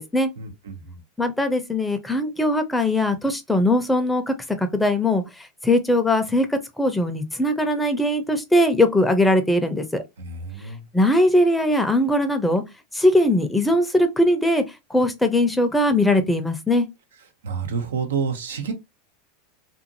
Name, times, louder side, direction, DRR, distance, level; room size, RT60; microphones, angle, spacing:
voice 1, 0.4-1.0 10.2-10.8 17.4-18.7, right 5 dB, 75° right, 0.7 m, -29 dB
voice 2, 1.2-5.2 5.6-10.0 10.9-12.6 12.9-14.6 14.9-16.9, left 1 dB, 5° left, 0.6 m, -20 dB
2.6 x 2.5 x 2.6 m
hypercardioid pair, 90°, 0 cm